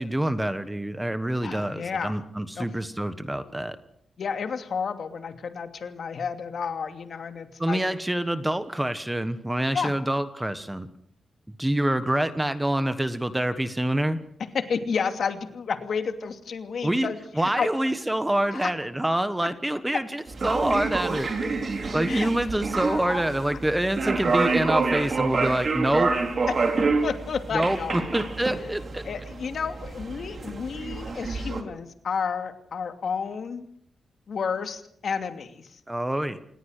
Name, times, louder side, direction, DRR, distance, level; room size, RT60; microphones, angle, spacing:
voice 1, 0.0-3.8 7.6-10.9 11.6-14.2 16.8-17.1 17.3-21.3 21.9-26.1 27.5-29.0 35.9-36.4, right 1 dB, 10° right, 11 dB, 1.3 m, -26 dB
voice 2, 1.4-2.2 2.6-2.7 3.4-3.5 4.2-7.8 9.7-10.0 14.5-17.7 18.5-18.7 21.8-22.3 22.9-23.2 27.0-28.1 29.0-33.6 34.3-35.8, left 6 dB, 55° left, 7 dB, 2.7 m, -31 dB
sound 1, 20.3-31.6, right 4 dB, 40° right, 3.6 m, -28 dB
28.0 x 20.0 x 6.6 m, 0.67 s
wide cardioid pair, 150°, 0 cm